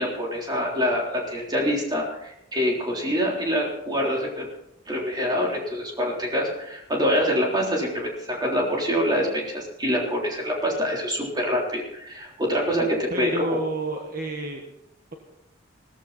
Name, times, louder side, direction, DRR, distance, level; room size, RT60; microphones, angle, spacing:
voice 1, 0.0-4.5 4.9-13.6, equal, 20° right, -2 dB, 3.8 m, -25 dB
voice 2, 13.1-14.6, right 1 dB, 45° right, 2 dB, 1.5 m, -29 dB
17.0 x 14.5 x 4.2 m, 0.83 s
head